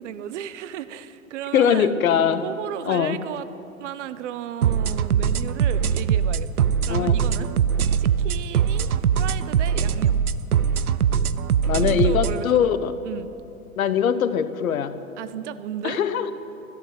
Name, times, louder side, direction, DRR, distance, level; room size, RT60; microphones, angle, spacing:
voice 1, 0.0-2.0 2.4-3.5 3.8-7.5 8.0-8.9 9.2-10.2 11.8-12.7 13.0-13.3 15.2-16.0, right 10 dB, 55° right, 14 dB, 0.9 m, -34 dB
voice 2, 1.5-2.4 2.9-3.2 6.9-7.2 11.6-12.9 13.8-14.9 15.8-16.3, left 8 dB, 70° left, 12 dB, 1.0 m, -21 dB
sound 1, 4.6-12.4, right 8 dB, 90° right, 0.6 m, -21 dB
13.0 x 12.0 x 8.0 m, 2.8 s
hypercardioid pair, 110°, 43 cm